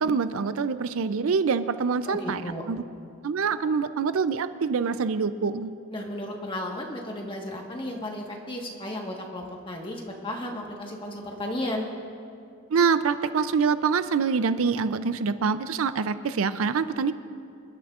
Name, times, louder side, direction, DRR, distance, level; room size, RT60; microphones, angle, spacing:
voice 1, 0.0-2.4 2.7-2.8 3.2-5.7 12.7-17.1, right 5 dB, 70° right, 12 dB, 0.4 m, -25 dB
voice 2, 2.1-2.6 5.9-11.9, left 1 dB, 25° left, 0 dB, 1.4 m, -34 dB
27.0 x 11.5 x 2.5 m, 2.4 s
head